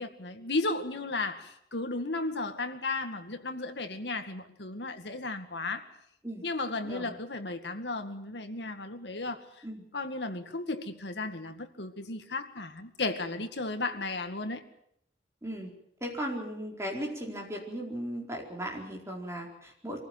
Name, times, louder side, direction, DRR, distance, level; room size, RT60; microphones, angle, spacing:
voice 1, 0.0-5.9 6.4-9.4 9.9-14.6, left 3 dB, 75° left, 2.1 m, -34 dB
voice 2, 6.8-7.1 9.6-9.8 15.4-15.7 16.0-20.0, equal, 15° right, 4.6 m, -37 dB
24.0 x 15.5 x 9.2 m
head